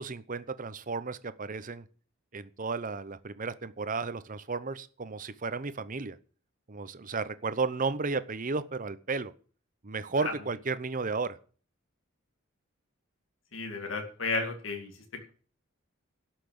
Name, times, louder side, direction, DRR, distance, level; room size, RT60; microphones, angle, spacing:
voice 1, 0.0-1.8 2.3-6.2 6.7-9.3 9.8-11.4, right 4 dB, 40° right, 14 dB, 0.8 m, -33 dB
voice 2, 13.5-14.9, left 3 dB, 65° left, 3 dB, 2.3 m, -32 dB
11.5 x 6.0 x 8.6 m, 0.42 s
head